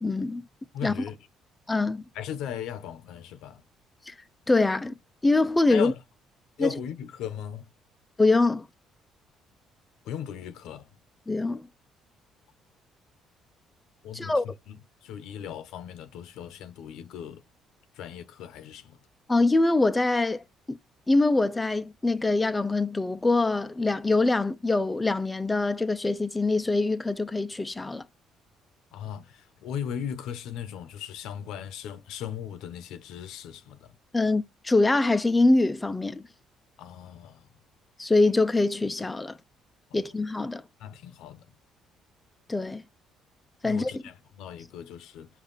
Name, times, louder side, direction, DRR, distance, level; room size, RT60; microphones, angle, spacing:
voice 1, 0.0-0.4 0.8-0.9 1.7-2.0 4.1-4.2 4.5-4.9 5.2-5.9 6.6-6.7 8.2-8.7 11.3-11.7 14.1-14.4 19.3-20.8 21.1-28.0 34.1-36.2 38.0-39.4 39.9-40.6 42.5-42.8 43.6-44.0, left 2 dB, 15° left, 0.4 m, -24 dB
voice 2, 0.7-1.2 2.1-3.6 5.7-6.0 6.6-7.7 10.0-10.9 14.0-14.3 14.7-17.4 17.9-19.0 28.9-33.9 36.8-37.5 40.8-41.5 43.6-45.3, left 9 dB, 80° left, 0.7 m, -37 dB
5.4 x 2.4 x 3.9 m
cardioid pair, 120°, 0 cm